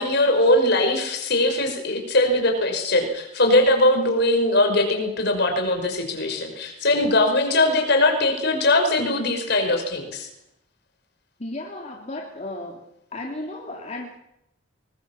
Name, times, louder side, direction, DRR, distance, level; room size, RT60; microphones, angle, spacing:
voice 1, 0.0-10.3, left 1 dB, 55° left, 4 dB, 5.5 m, -21 dB
voice 2, 11.4-12.8 13.1-14.2, left 2 dB, 35° left, -1 dB, 3.1 m, -34 dB
23.5 x 21.0 x 7.3 m, 0.82 s
head